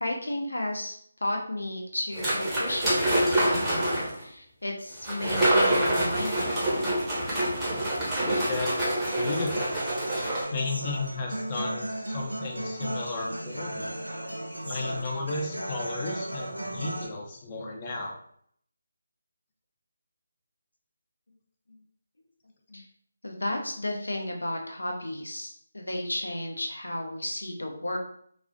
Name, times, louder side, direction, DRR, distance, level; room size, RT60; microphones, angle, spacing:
voice 1, 0.0-6.9 8.3-8.5 21.7-21.8 22.7-22.8 23.2-28.0, left 1 dB, 75° left, 1 dB, 0.6 m, -33 dB
sound 1, 2.2-4.2 5.0-10.4, right 1 dB, 5° right, 0.8 m, -26 dB
voice 2, 8.5-9.8 10.5-14.0 14.6-18.2, left 3 dB, 30° left, 1 dB, 0.4 m, -34 dB
Human voice / Acoustic guitar, 9.1-17.1, right 1 dB, 90° right, 0.5 m, -36 dB
2.3 x 2.0 x 2.5 m, 0.64 s
figure-of-eight pair, 155°, 0 cm